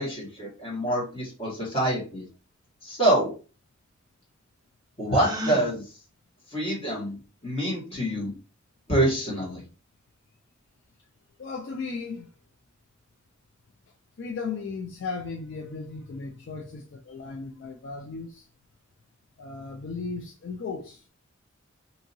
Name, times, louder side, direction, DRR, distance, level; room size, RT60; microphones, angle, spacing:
voice 1, 0.0-2.2 2.8-3.3 5.0-5.8 6.5-8.3 8.9-9.6, right 1 dB, 30° left, 1.5 m, -26 dB
Gasp, 5.1-5.7, equal, 20° right, 0.5 m, -32 dB
voice 2, 11.4-12.3 14.2-18.4 19.4-21.0, left 4 dB, 60° left, 0.4 m, -36 dB
2.7 x 2.7 x 2.6 m
head